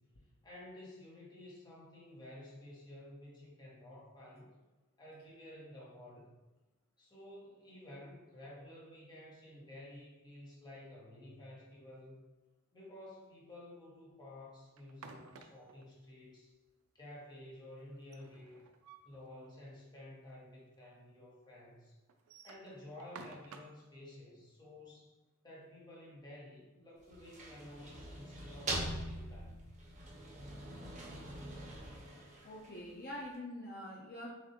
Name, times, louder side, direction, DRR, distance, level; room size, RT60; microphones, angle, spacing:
voice 1, 0.4-4.5 5.0-6.3 7.0-12.2 12.7-16.5 16.9-18.6 19.0-21.9 22.4-25.1 25.4-29.6, left 1 dB, 20° left, -5 dB, 1.3 m, -52 dB
sound 1, 14.8-15.8 17.9-19.2 19.6-19.7 20.0-20.1 20.8-20.9 22.1-23.8, right 4 dB, 70° right, 0.4 m, -53 dB
sound 2, 27.0-33.0, right 1 dB, 35° right, 1.0 m, -43 dB
voice 2, 32.4-34.3, left 1 dB, 45° left, -5 dB, 0.7 m, -45 dB
6.3 x 2.6 x 2.9 m, 1.1 s
head